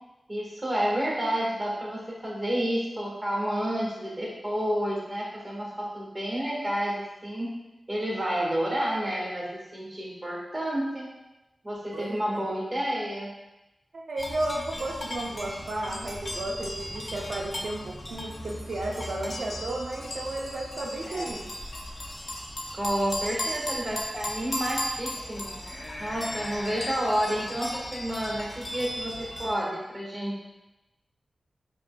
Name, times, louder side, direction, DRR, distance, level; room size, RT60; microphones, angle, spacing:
voice 1, 0.3-7.5 7.9-11.1 11.6-13.3 21.1-21.3 22.7-25.6 26.0-30.4, equal, 30° right, -4 dB, 1.4 m, -30 dB
voice 2, 11.9-12.5 13.9-21.5, right 1 dB, 80° right, -1 dB, 0.6 m, -33 dB
sound 1, 14.2-29.6, left 1 dB, 50° left, 0.6 m, -36 dB
5.0 x 2.8 x 2.2 m, 1.0 s
cardioid pair, 60°, 0 cm